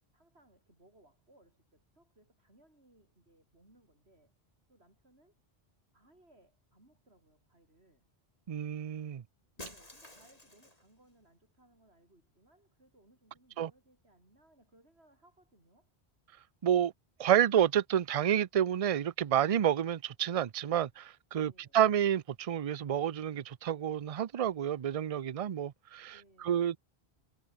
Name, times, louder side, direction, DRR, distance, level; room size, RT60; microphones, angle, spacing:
voice 1, 0.1-4.4 4.7-5.4 5.9-8.1 9.6-15.9 21.4-21.8 26.1-26.7, right 1 dB, 80° right, 7.8 m, -65 dB
voice 2, 8.5-9.2 13.6-13.7 16.6-16.9 17.2-26.1 26.4-26.8, right 10 dB, 45° right, 0.5 m, -29 dB
Shatter, 9.6-10.9, left 1 dB, 35° left, 7.2 m, -50 dB
omnidirectional pair, 1.1 m